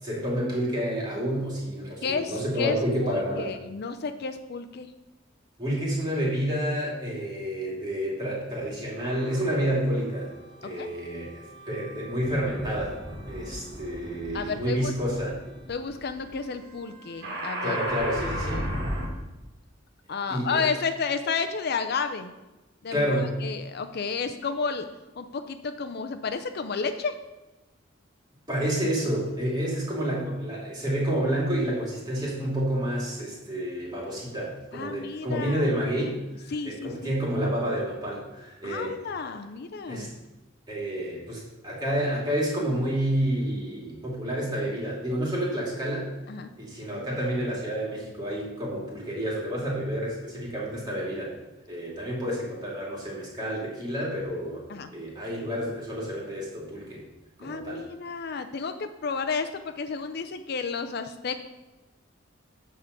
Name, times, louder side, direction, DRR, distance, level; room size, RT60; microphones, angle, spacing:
voice 1, 0.0-3.5 5.6-10.3 10.6-13.0 13.3-15.4 17.6-18.6 20.3-20.6 22.9-23.3 28.5-39.0 39.9-40.1 40.7-46.1 46.6-51.3 51.7-54.6 54.9-57.0 57.4-57.8, equal, 20° right, -4 dB, 2.5 m, -29 dB
voice 2, 2.0-2.8 3.0-4.9 10.8-10.9 14.3-14.9 15.7-17.8 18.2-18.7 20.1-22.3 22.8-23.0 23.4-24.9 25.1-27.1 34.7-35.7 36.5-37.2 38.6-40.1 46.3-46.5 54.7-54.9 57.4-61.4, left 5 dB, 55° left, 8 dB, 0.5 m, -32 dB
sound 1, 9.0-9.7 10.5-19.1, equal, 55° right, 1.8 m, -36 dB
10.0 x 3.7 x 6.7 m, 1.1 s
head